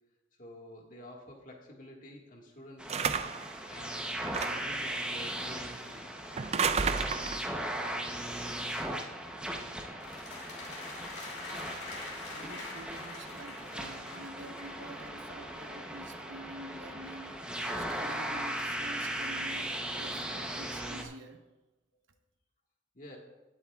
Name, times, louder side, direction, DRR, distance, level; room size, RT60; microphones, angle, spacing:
voice 1, 0.4-4.0 4.4-6.2 21.9-22.0 22.9-23.2, left 1 dB, 40° left, 1.7 m, -50 dB
sound 1, 2.8-21.0, right 1 dB, 5° right, 0.8 m, -38 dB
sound 2, 2.9-3.5 4.3-4.8 6.4-7.5, right 5 dB, 30° right, 0.4 m, -31 dB
sound 3, 10.0-14.8, left 3 dB, 60° left, 2.6 m, -44 dB
voice 2, 12.3-17.5 17.8-21.4, right 1 dB, 75° right, 1.0 m, -48 dB
19.5 x 8.0 x 2.4 m
head